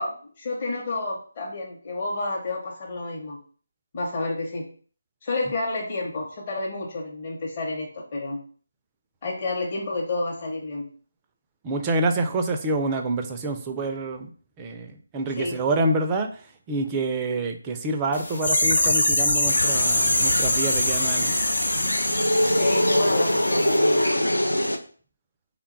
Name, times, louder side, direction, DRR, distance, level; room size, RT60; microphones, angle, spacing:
voice 1, 0.0-3.4 3.9-4.7 5.2-8.4 9.2-10.9 15.4-15.6 22.6-24.1, left 2 dB, 30° left, -3 dB, 0.8 m, -30 dB
voice 2, 11.6-14.3 14.6-16.4 16.7-21.3, right 2 dB, 15° right, 4 dB, 0.3 m, -27 dB
sound 1, 18.1-23.8 24.0-24.1, left 1 dB, 55° left, 1.0 m, -24 dB
sound 2, 19.5-24.8, left 1 dB, 75° left, 0.5 m, -24 dB
3.4 x 2.2 x 4.4 m, 0.43 s
figure-of-eight pair, 155°, 0 cm